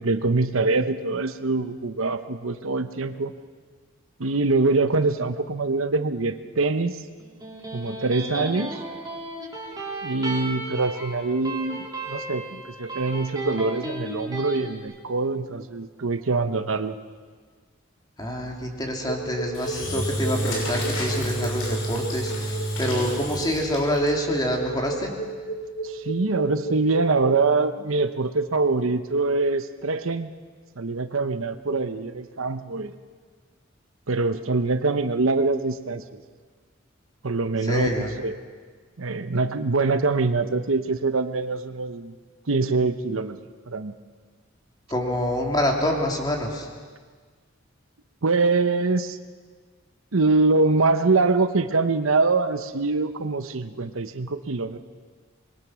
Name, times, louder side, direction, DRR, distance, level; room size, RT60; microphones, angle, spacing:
voice 1, 0.0-3.3 4.2-7.0 7.7-8.8 10.0-17.0 25.8-30.3 30.8-32.9 34.1-36.2 37.2-38.4 39.0-42.1 42.5-43.4 43.7-44.0 48.2-49.2 50.1-54.8, right 3 dB, 85° right, 10 dB, 0.9 m, -24 dB
Electric guitar, 7.2-14.6, right 2 dB, 20° right, 3.5 m, -34 dB
voice 2, 18.2-25.1 37.6-38.1 44.9-46.7, equal, 20° left, 1 dB, 2.9 m, -26 dB
sound 1, 19.0-27.4, right 2 dB, 60° left, 2.1 m, -33 dB
Engine / Drill, 19.5-24.1, equal, 90° left, 6.0 m, -29 dB
26.0 x 22.0 x 6.3 m, 1.5 s
head